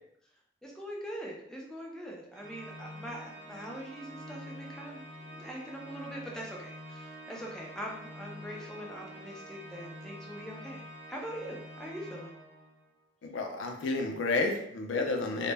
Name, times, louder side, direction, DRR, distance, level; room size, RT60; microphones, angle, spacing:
voice 1, 0.6-10.8 11.1-12.3, equal, 5° left, -2 dB, 0.4 m, -42 dB
Organ, 2.3-12.9, equal, 75° right, 0.8 m, -47 dB
voice 2, 13.2-15.5, left 3 dB, 70° left, 3 dB, 0.4 m, -31 dB
2.1 x 2.0 x 3.3 m, 0.74 s
head